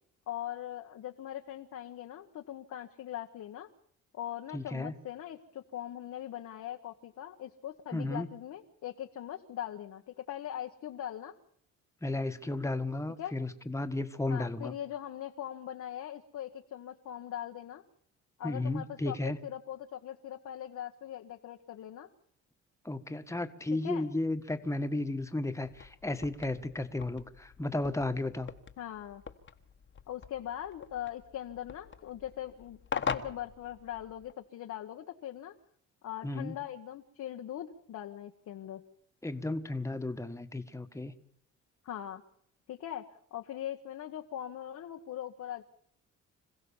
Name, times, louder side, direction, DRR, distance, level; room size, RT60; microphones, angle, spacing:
voice 1, 0.3-3.7 4.1-11.3 13.2-13.4 14.3-17.8 18.4-22.1 23.8-24.1 28.8-29.2 30.1-35.5 36.0-38.8 41.8-42.2 42.7-45.6, left 11 dB, 70° left, 3 dB, 1.3 m, -41 dB
voice 2, 4.5-4.9 7.9-8.3 12.0-14.7 18.4-19.4 22.8-28.5 36.2-36.5 39.2-41.1, left 2 dB, 10° left, 8 dB, 1.6 m, -34 dB
sound 1, 25.6-34.3, left 6 dB, 40° left, 1.4 m, -42 dB
26.5 x 15.5 x 7.2 m, 0.67 s
cardioid pair, 90°, 30 cm